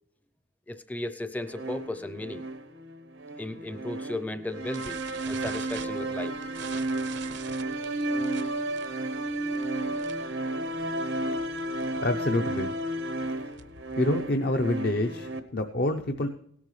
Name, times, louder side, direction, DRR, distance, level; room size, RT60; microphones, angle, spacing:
voice 1, 0.7-2.5 3.4-6.4, left 1 dB, 10° left, 12 dB, 0.5 m, -35 dB
sound 1, 1.5-15.4, right 1 dB, 90° right, 1.1 m, -32 dB
sound 2, 4.7-10.4 10.6-10.9 11.2-11.3 11.6-11.8 12.3-13.9, right 7 dB, 65° right, 0.7 m, -44 dB
voice 2, 12.0-12.7 13.4-13.5 14.0-16.3, left 1 dB, 50° left, 5 dB, 0.7 m, -27 dB
17.5 x 11.0 x 3.2 m, 0.69 s
head